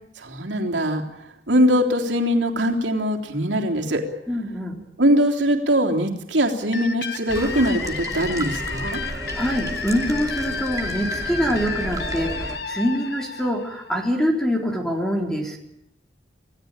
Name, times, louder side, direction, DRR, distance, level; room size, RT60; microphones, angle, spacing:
voice 1, 0.2-1.0 1.5-4.0 5.0-9.0, equal, 80° right, 1 dB, 3.6 m, -21 dB
voice 2, 4.3-4.8 9.1-15.6, equal, 5° left, 2 dB, 3.8 m, -25 dB
sound 1, 6.7-14.3, left 5 dB, 65° left, 1.5 m, -32 dB
sound 2, 7.3-12.6, right 1 dB, 20° right, 2.6 m, -32 dB
27.5 x 17.5 x 9.0 m, 0.80 s
head